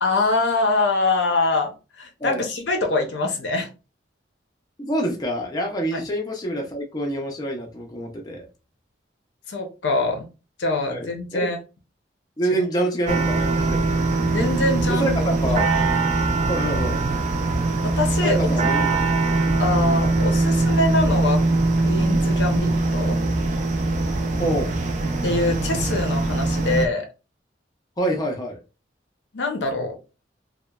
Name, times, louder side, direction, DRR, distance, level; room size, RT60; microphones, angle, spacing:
voice 1, 0.0-3.7 5.9-6.0 9.5-10.3 10.6-11.6 14.3-15.1 15.5-15.7 17.8-18.4 19.6-21.4 21.8-23.2 25.2-27.1 29.3-30.0, left 3 dB, 70° left, 0.6 m, -24 dB
voice 2, 4.8-8.5 10.9-11.5 12.4-14.0 14.9-15.6 16.5-17.0 18.2-19.1 19.8-20.1 24.3-24.8 28.0-28.6, right 1 dB, 20° left, 0.4 m, -27 dB
sound 1, 13.1-26.9, right 2 dB, 40° right, 0.3 m, -22 dB
2.9 x 2.1 x 2.2 m
head